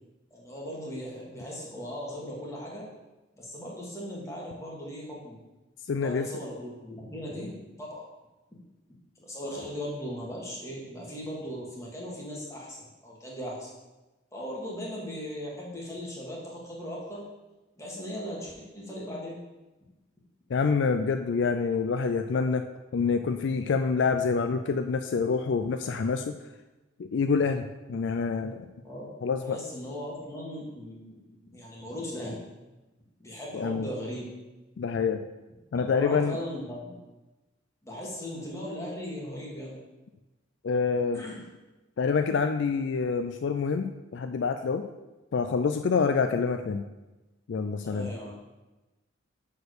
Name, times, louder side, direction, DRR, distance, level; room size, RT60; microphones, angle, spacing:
voice 1, 0.3-2.9 3.4-5.4 6.0-7.5 7.8-8.0 9.2-12.8 13.0-13.7 14.3-17.2 17.8-19.4 28.8-29.1 29.4-32.4 33.2-34.3 35.9-37.0 37.8-39.8 41.1-41.4 47.8-48.3, equal, 15° left, -4 dB, 1.8 m, -38 dB
voice 2, 5.9-6.3 20.5-22.6 22.9-26.4 27.0-28.7 29.2-29.6 33.5-33.9 34.8-35.2 35.7-36.4 40.6-41.2 42.0-44.8 45.3-46.8 47.5-48.1, left 5 dB, 60° left, 7 dB, 0.4 m, -27 dB
6.7 x 4.5 x 6.5 m, 1.1 s
head